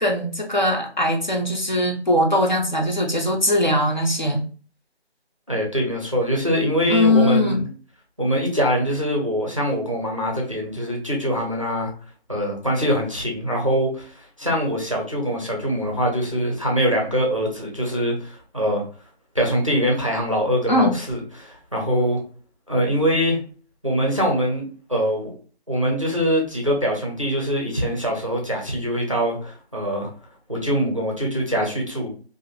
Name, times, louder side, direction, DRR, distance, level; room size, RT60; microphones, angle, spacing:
voice 1, 0.0-4.5 6.9-7.6 20.7-20.9, left 1 dB, 45° left, 0 dB, 0.5 m, -20 dB
voice 2, 5.5-7.7 8.2-11.9 12.3-18.8 19.3-22.2 22.7-23.4 23.8-25.3 25.7-30.1 30.5-32.1, equal, 30° right, -1 dB, 0.5 m, -23 dB
2.5 x 2.4 x 2.6 m, 0.40 s
figure-of-eight pair, 170°, 33 cm